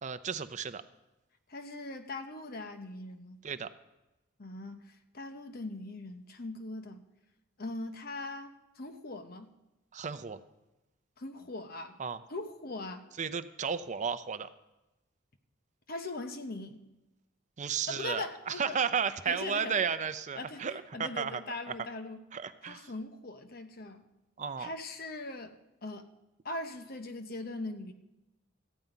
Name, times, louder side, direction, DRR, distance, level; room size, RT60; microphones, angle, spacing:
voice 1, 0.0-0.8 3.4-3.7 9.9-10.4 12.0-12.2 13.2-14.5 17.6-21.4 21.7-21.8 22.3-22.9 24.4-24.7, right 6 dB, 40° right, 12 dB, 0.5 m, -33 dB
voice 2, 1.5-3.4 4.4-7.0 7.6-9.5 11.2-12.0 12.3-13.1 15.9-16.8 17.9-18.8 19.3-19.8 20.4-22.2 22.6-24.0 24.6-25.5 25.8-26.0 26.4-27.9, left 2 dB, 55° left, 7 dB, 1.0 m, -40 dB
14.0 x 5.5 x 9.1 m, 0.97 s
head